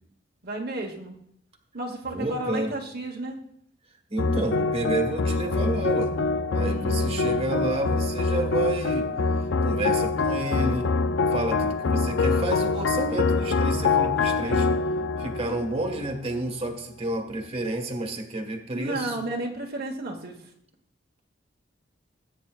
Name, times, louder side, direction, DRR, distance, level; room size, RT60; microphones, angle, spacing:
voice 1, 0.4-1.1 1.7-3.4 6.6-7.7 18.7-20.4, right 1 dB, 55° right, 0 dB, 1.3 m, -33 dB
voice 2, 2.1-2.7 4.1-6.1 6.5-9.1 9.6-10.9 11.3-14.7 15.2-19.2, right 2 dB, 35° right, 3 dB, 1.6 m, -30 dB
sound 1, 4.2-16.7, left 3 dB, 75° left, 0.5 m, -25 dB
20.5 x 9.2 x 2.4 m, 0.71 s
head